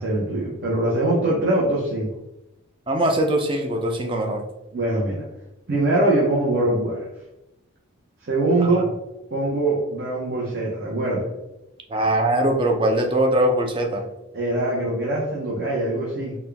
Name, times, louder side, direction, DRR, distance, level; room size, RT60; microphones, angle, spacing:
voice 1, 0.0-2.1 4.7-5.2 5.7-7.1 8.2-8.9 9.3-11.3 14.3-16.3, right 2 dB, 50° right, -5 dB, 0.8 m, -22 dB
voice 2, 2.9-4.4 8.6-8.7 11.9-14.0, right 1 dB, 25° right, 2 dB, 0.4 m, -21 dB
4.2 x 2.3 x 3.4 m, 0.94 s
head